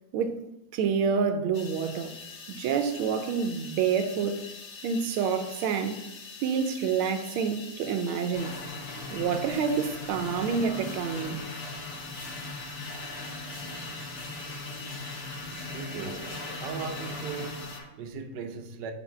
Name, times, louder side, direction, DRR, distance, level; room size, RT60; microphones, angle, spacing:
voice 1, 0.7-2.1 2.5-4.5 4.8-6.0 6.4-8.5 9.1-11.4, right 6 dB, 85° right, 1.5 m, -28 dB
sound 1, 1.5-17.8, left 5 dB, 70° left, 0.6 m, -44 dB
sound 2, 8.3-17.9, left 2 dB, 55° left, 2.2 m, -39 dB
voice 2, 15.7-16.3 16.6-18.9, right 6 dB, 65° right, 1.2 m, -38 dB
4.4 x 4.3 x 5.6 m
omnidirectional pair, 2.3 m